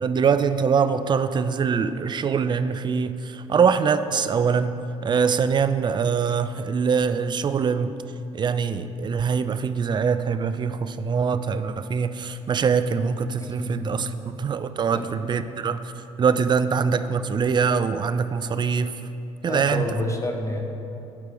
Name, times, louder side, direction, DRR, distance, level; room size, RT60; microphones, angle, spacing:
voice 1, 0.0-8.0 8.3-15.9 16.2-19.0 19.4-19.9, right 6 dB, 30° right, 11 dB, 0.4 m, -23 dB
voice 2, 13.4-14.2 14.9-15.1 19.4-20.7, left 1 dB, 20° left, 3 dB, 1.0 m, -29 dB
8.7 x 4.5 x 4.9 m, 2.8 s
hypercardioid pair, 55°, 16 cm